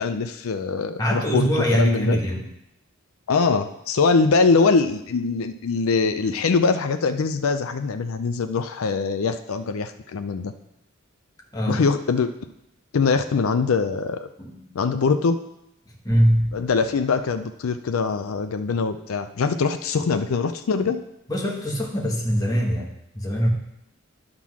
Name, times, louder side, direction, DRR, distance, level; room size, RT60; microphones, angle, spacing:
voice 1, 0.0-2.2 3.3-10.5 11.7-12.3 12.9-14.3 14.7-15.4 16.5-21.0, left 4 dB, 80° left, 8 dB, 0.5 m, -23 dB
voice 2, 1.0-2.5 11.5-11.9 14.4-14.7 15.9-16.6 21.3-23.5, equal, 15° left, -2 dB, 1.3 m, -23 dB
sound 1, 16.1-18.7, left 1 dB, 25° right, 1.7 m, -46 dB
10.0 x 3.8 x 6.0 m, 0.83 s
head